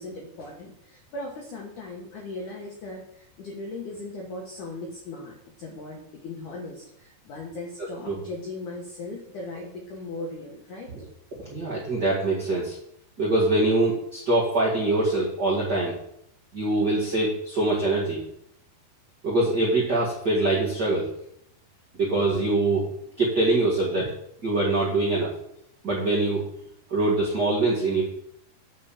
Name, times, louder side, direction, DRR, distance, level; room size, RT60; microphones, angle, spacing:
voice 1, 0.0-10.9, left 2 dB, 65° left, -1 dB, 2.2 m, -38 dB
voice 2, 11.4-12.8 13.2-15.9 16.5-18.2 19.2-21.1 22.0-22.8 23.2-24.1 24.4-25.3 25.8-26.5 26.9-28.0, right 2 dB, 40° right, -6 dB, 1.5 m, -23 dB
9.1 x 4.8 x 7.2 m, 0.73 s
omnidirectional pair, 5.0 m